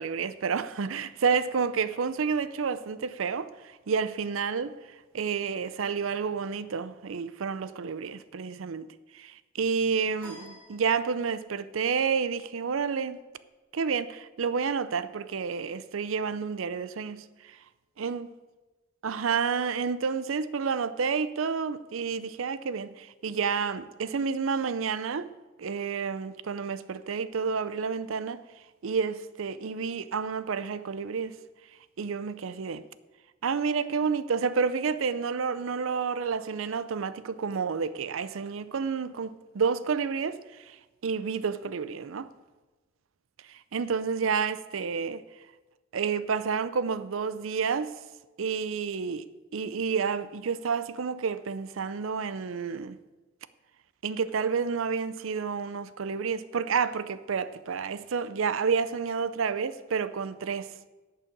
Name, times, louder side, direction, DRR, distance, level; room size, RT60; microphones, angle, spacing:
voice 1, 0.0-3.5 3.9-4.8 5.1-8.9 9.1-13.2 13.7-17.6 18.0-18.3 19.0-25.3 25.6-28.4 28.8-31.4 32.0-32.8 33.4-40.4 40.7-40.8 41.0-42.3 43.5-45.2 45.9-47.9 48.4-49.3 49.5-53.0 54.0-60.7, right 5 dB, 80° right, 0.5 m, -30 dB
sound 1, 10.2-11.6, equal, 5° left, 3.9 m, -50 dB
10.5 x 5.6 x 7.3 m
head